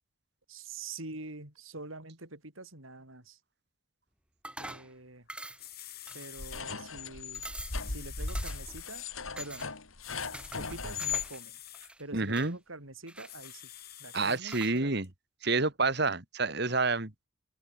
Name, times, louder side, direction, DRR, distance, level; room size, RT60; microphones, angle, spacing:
voice 1, 0.5-3.4 4.6-5.3 6.1-7.4 7.9-9.1 9.4-9.7 10.6-11.6 12.0-13.6 14.0-14.9, right 3 dB, 80° right, 6.9 m, -45 dB
sound 1, 4.4-4.9 5.3-5.7 6.1-6.7 7.0-7.1 7.3-7.8 8.3-8.8 9.4-9.7 10.3-11.4 11.7-12.5 13.1-13.8 14.5-14.8, right 1 dB, 5° right, 5.2 m, -45 dB
sound 2, 5.3-5.4 5.6-6.6 7.5-9.1 10.0-11.9 13.2-14.4 15.0-15.1, left 14 dB, 50° left, 5.9 m, -48 dB
sound 3, 6.4-11.3, left 5 dB, 85° left, 3.3 m, -37 dB
voice 2, 12.1-12.6 14.1-15.1 15.4-17.1, right 3 dB, 55° right, 2.1 m, -28 dB
head